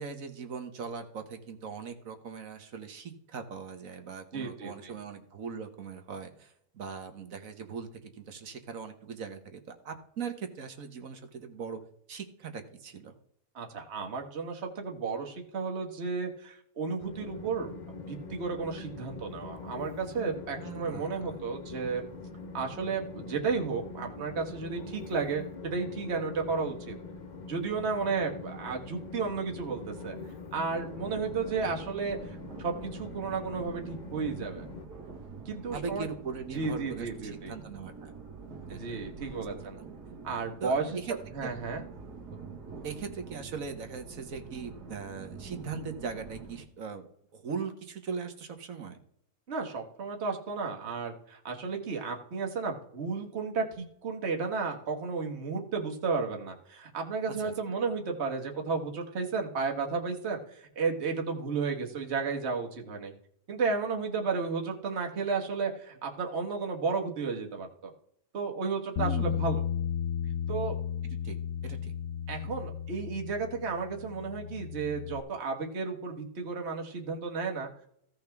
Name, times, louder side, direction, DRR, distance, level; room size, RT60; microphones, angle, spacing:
voice 1, 0.0-11.8 12.1-13.1 20.6-21.4 35.7-38.1 38.7-38.8 39.4-39.9 40.6-41.1 42.8-47.1 47.3-49.0 57.4-57.5 69.0-69.5 71.2-71.4 71.6-71.9, right 6 dB, 60° right, 7 dB, 1.5 m, -40 dB
voice 2, 4.3-4.9 13.5-17.7 18.1-22.0 22.5-27.0 27.5-30.2 30.5-34.7 35.4-36.0 36.5-37.5 38.7-39.8 40.2-41.0 41.3-41.8 42.3-42.4 49.5-63.1 63.5-67.9 68.3-69.6 70.3-70.8 72.3-77.9, right 4 dB, 45° right, 1 dB, 1.7 m, -33 dB
Train, 17.0-34.9, left 3 dB, 40° left, 0.7 m, -43 dB
sound 1, 30.7-46.7, right 4 dB, 90° right, 2.2 m, -46 dB
Bass guitar, 69.0-75.2, left 9 dB, 85° left, 1.1 m, -34 dB
16.0 x 5.7 x 3.5 m, 0.70 s
omnidirectional pair, 1.7 m